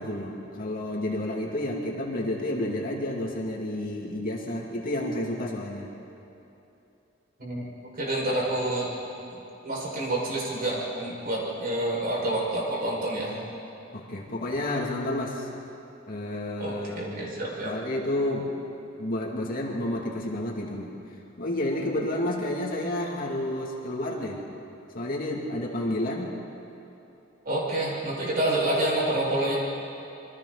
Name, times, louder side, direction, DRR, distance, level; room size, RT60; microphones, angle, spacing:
voice 1, 0.0-5.9 13.9-15.5 16.1-17.3 17.6-18.5 19.0-20.9 21.4-24.4 24.9-26.3, left 1 dB, 45° left, -2 dB, 2.7 m, -30 dB
voice 2, 7.9-8.9 9.3-9.4 9.6-13.4 16.6-17.7 27.4-29.6, right 1 dB, 50° right, -4 dB, 5.9 m, -28 dB
27.5 x 24.0 x 4.2 m, 2.9 s
head